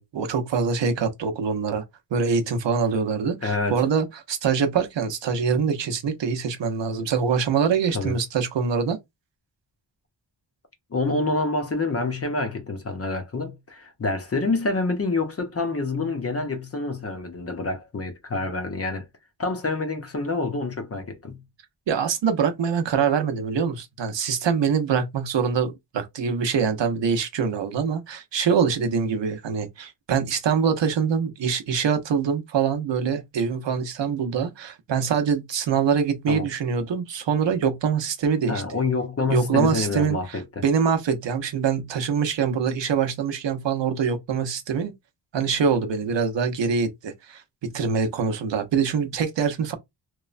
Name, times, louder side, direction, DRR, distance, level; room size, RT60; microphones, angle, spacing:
voice 1, 0.0-1.8 2.1-9.0 21.9-38.6 39.3-44.9 45.3-49.7, right 6 dB, 70° right, 0.7 m, -24 dB
voice 2, 3.4-3.8 7.9-8.2 10.9-19.1 19.4-21.4 36.3-36.5 38.5-40.6, left 3 dB, 35° left, 0.6 m, -27 dB
3.0 x 2.1 x 2.4 m
wide cardioid pair, 140°, 45 cm